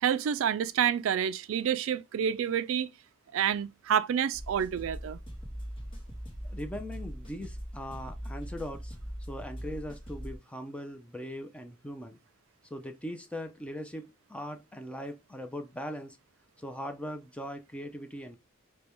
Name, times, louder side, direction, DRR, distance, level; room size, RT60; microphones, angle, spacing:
voice 1, 0.0-2.9 3.3-5.2, right 8 dB, 70° right, 0.3 m, -28 dB
sound 1, 4.3-10.4, equal, 25° left, 1.2 m, -41 dB
voice 2, 6.4-9.0 9.3-12.2 12.7-16.2 16.6-18.4, equal, 5° left, 0.5 m, -40 dB
5.1 x 2.2 x 3.0 m
head